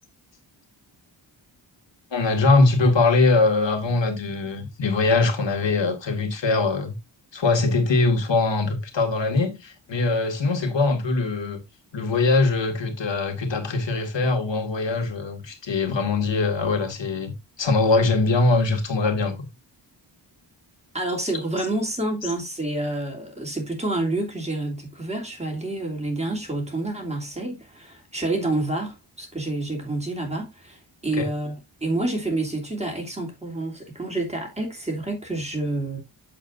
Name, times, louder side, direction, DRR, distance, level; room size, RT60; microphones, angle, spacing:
voice 1, 2.1-7.0 7.3-11.6 11.9-19.5 31.1-31.3, left 3 dB, 70° left, 2.1 m, -22 dB
voice 2, 20.9-36.0, right 2 dB, 15° right, 2.9 m, -28 dB
8.6 x 7.3 x 2.6 m
wide cardioid pair, 95°, 45 cm